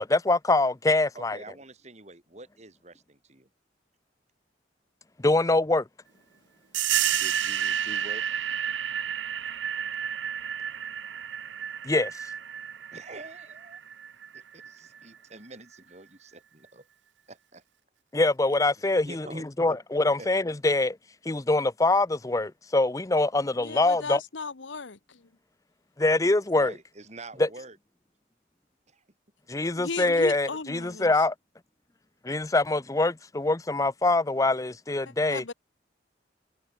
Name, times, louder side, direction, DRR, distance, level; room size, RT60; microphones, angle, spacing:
voice 1, 0.0-1.4 5.2-5.8 11.8-12.1 18.1-21.0 21.3-24.2 26.0-26.7 27.4-27.5 29.5-31.3 32.2-35.4, left 2 dB, 20° left, 0.6 m, -24 dB
voice 2, 1.1-3.5 7.1-8.2 12.9-13.8 14.3-16.9 17.3-17.6 19.0-19.4 19.7-19.8 20.2-20.3 26.5-27.8 28.9-29.0, right 2 dB, 40° right, 3.6 m, -46 dB
sound 1, 6.7-15.0, right 10 dB, 80° right, 0.8 m, -31 dB
voice 3, 23.6-25.0 29.7-31.1 35.3-35.5, left 4 dB, 90° left, 1.2 m, -35 dB
head